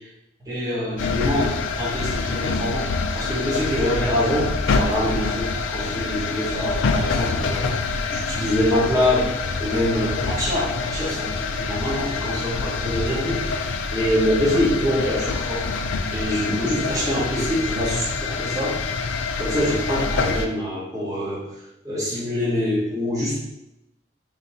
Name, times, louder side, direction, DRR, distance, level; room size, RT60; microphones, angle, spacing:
voice 1, 0.5-2.9 3.1-7.7 8.1-9.3 9.6-13.5 13.9-15.6 16.1-18.8 19.4-21.4 21.8-23.4, left 1 dB, 20° right, -7 dB, 1.1 m, -25 dB
sound 1, 1.0-20.5, left 4 dB, 75° left, 0.4 m, -26 dB
3.5 x 2.8 x 4.1 m, 0.90 s
head